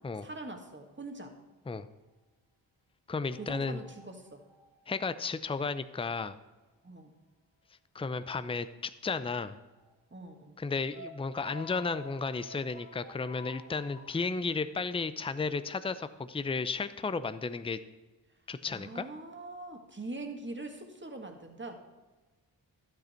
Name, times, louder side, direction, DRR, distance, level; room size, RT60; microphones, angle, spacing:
voice 1, 0.2-1.3 3.4-4.4 6.8-7.1 10.1-10.6 18.7-21.8, right 2 dB, 25° right, 4 dB, 2.0 m, -43 dB
voice 2, 3.1-3.8 4.9-6.4 7.9-9.6 10.6-17.8 18.5-19.1, left 4 dB, 10° left, 13 dB, 0.6 m, -33 dB
sound 1, 3.3-5.3 8.2-8.3 9.8-9.9 10.3-10.4 10.9-14.1, equal, 85° right, 2.3 m, -49 dB
12.0 x 8.0 x 4.5 m, 1.2 s
supercardioid pair, 40°, 46 cm